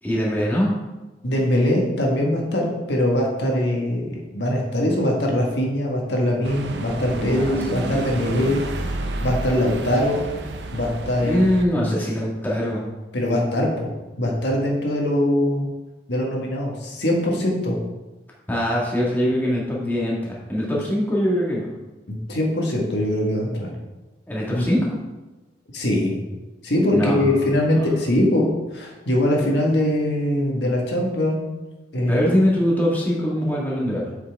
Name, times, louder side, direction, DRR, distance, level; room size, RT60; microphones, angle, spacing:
voice 1, 0.0-0.7 7.2-8.0 11.2-12.8 18.5-21.7 24.3-25.0 26.9-27.9 32.1-34.1, equal, 10° left, -5 dB, 1.7 m, -23 dB
voice 2, 1.2-8.9 9.2-10.2 10.7-11.4 11.7-11.9 13.1-13.9 14.2-15.6 16.1-17.8 22.1-23.7 24.5-24.6 25.7-26.1 26.6-31.4 31.9-32.2, left 1 dB, 80° left, -1 dB, 1.5 m, -22 dB
sound 1, 6.4-11.6, right 2 dB, 80° right, 0.7 m, -31 dB
7.8 x 5.7 x 3.5 m, 1.1 s
head